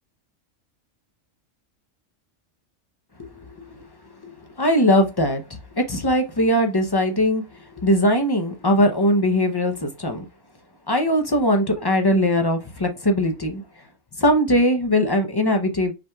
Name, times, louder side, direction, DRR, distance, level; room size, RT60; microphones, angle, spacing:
voice 1, 3.5-3.8 4.2-4.3 4.6-10.2 10.9-13.6 14.2-15.9, equal, 30° left, 5 dB, 0.5 m, -20 dB
5.0 x 4.3 x 2.3 m, 0.27 s
omnidirectional pair, 1.3 m